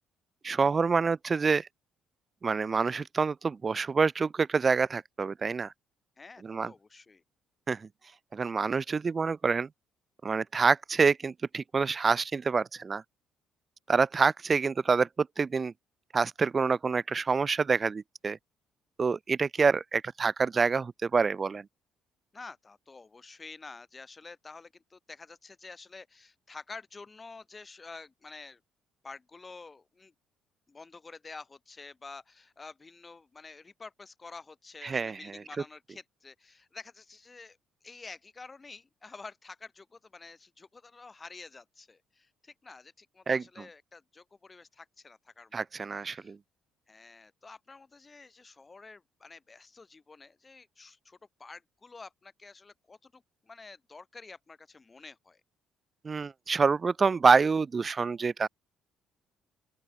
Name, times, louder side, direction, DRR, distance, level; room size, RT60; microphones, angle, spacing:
voice 1, 0.4-1.7 2.4-5.7 6.4-6.7 7.7-7.9 8.3-9.7 10.2-13.0 13.9-15.7 16.1-18.4 19.0-21.7 34.8-35.4 43.3-43.7 45.5-46.4 56.0-58.5, right 5 dB, 35° right, 0.6 m, -27 dB
voice 2, 6.2-7.2 22.3-28.6 29.0-30.1 30.7-37.6 37.8-45.6 46.0-46.3 46.9-55.4, left 4 dB, 25° left, 7.7 m, -49 dB
open air
supercardioid pair, 80°, 0 cm